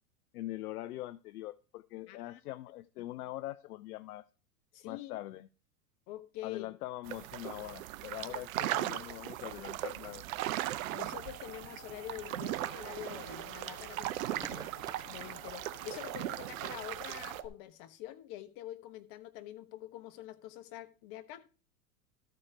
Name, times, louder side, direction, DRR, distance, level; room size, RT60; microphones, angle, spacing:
voice 1, 0.3-4.3 4.8-5.5 6.4-10.2, left 16 dB, 75° left, 0.5 m, -43 dB
voice 2, 2.1-2.4 3.0-3.1 4.7-5.1 6.1-6.7 8.7-9.1 10.9-14.7 15.1-21.4, left 13 dB, 45° left, 1.2 m, -46 dB
sound 1, 7.0-17.4, right 14 dB, 60° right, 0.8 m, -38 dB
sound 2, 9.4-15.7, right 5 dB, 10° right, 0.4 m, -55 dB
sound 3, 10.9-17.5, left 1 dB, 10° left, 2.3 m, -54 dB
13.0 x 4.6 x 5.0 m
hypercardioid pair, 95°, 46 cm